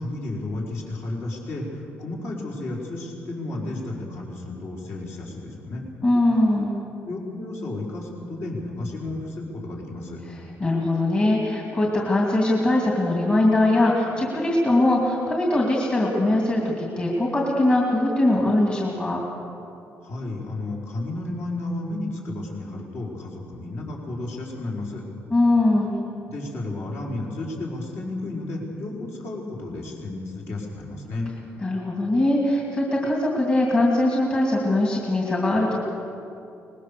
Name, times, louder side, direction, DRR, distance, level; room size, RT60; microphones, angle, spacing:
voice 1, 0.0-5.8 7.0-10.2 20.0-25.0 26.3-31.3, left 2 dB, 55° left, -2 dB, 4.8 m, -32 dB
voice 2, 6.0-6.7 10.6-19.2 25.3-25.9 31.6-35.8, left 1 dB, 20° left, -2 dB, 2.6 m, -21 dB
24.0 x 20.5 x 6.9 m, 2.7 s
cardioid pair, 175°, 5 cm